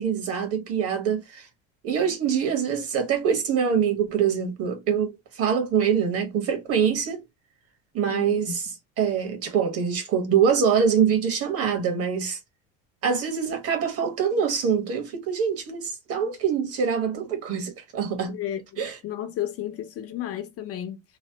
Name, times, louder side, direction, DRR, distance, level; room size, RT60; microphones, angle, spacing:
voice 1, 0.0-1.5 1.8-7.2 7.9-8.7 9.0-12.4 13.0-18.4 18.8-19.0, right 7 dB, 45° right, 1.2 m, -24 dB
voice 2, 8.1-8.5 18.3-21.0, left 11 dB, 45° left, 0.5 m, -33 dB
3.1 x 2.0 x 2.7 m
supercardioid pair, 115°, 34 cm